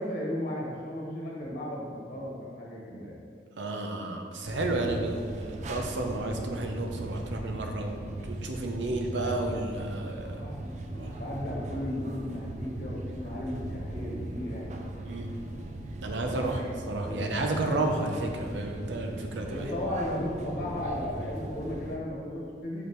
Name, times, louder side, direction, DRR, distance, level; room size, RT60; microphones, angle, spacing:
voice 1, 0.0-3.2 10.2-14.6 16.1-16.6 17.0-17.3 19.5-22.8, left 1 dB, 45° left, -4 dB, 1.2 m, -35 dB
voice 2, 3.6-8.0 8.2-10.4 11.0-11.1 15.0-15.3 16.0-16.6 16.9-19.7, right 2 dB, 80° right, 2 dB, 0.7 m, -32 dB
sound 1, 4.4-22.0, right 1 dB, 40° right, 0.4 m, -38 dB
6.2 x 5.2 x 3.1 m, 2.2 s
head